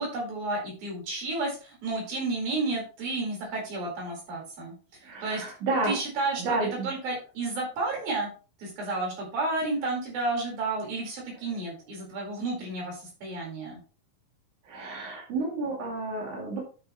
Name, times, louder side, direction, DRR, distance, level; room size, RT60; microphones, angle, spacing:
voice 1, 0.0-5.4 5.8-6.6 6.8-8.3 8.6-13.8, right 2 dB, 80° right, -1 dB, 6.3 m, -31 dB
voice 2, 5.0-5.9 6.4-6.9 14.6-16.6, right 2 dB, 60° right, -3 dB, 3.9 m, -30 dB
11.0 x 7.0 x 3.1 m, 0.34 s
omnidirectional pair, 4.2 m